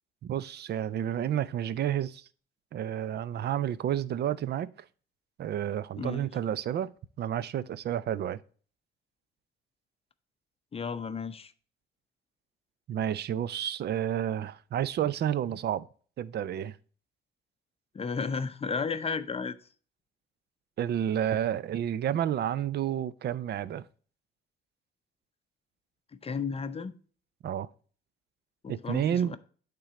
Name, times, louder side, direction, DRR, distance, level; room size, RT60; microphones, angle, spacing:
voice 1, 0.2-2.2 2.7-4.7 5.4-6.9 7.2-8.4 12.9-15.9 16.2-16.7 20.8-23.8 27.4-27.7 28.7-29.4, right 10 dB, 55° right, 0.5 m, -30 dB
voice 2, 6.0-6.3 10.7-11.5 17.9-19.6 26.1-27.0 28.6-29.4, left 5 dB, 30° left, 0.6 m, -33 dB
8.8 x 3.8 x 4.2 m
cardioid pair, 90°, 20 cm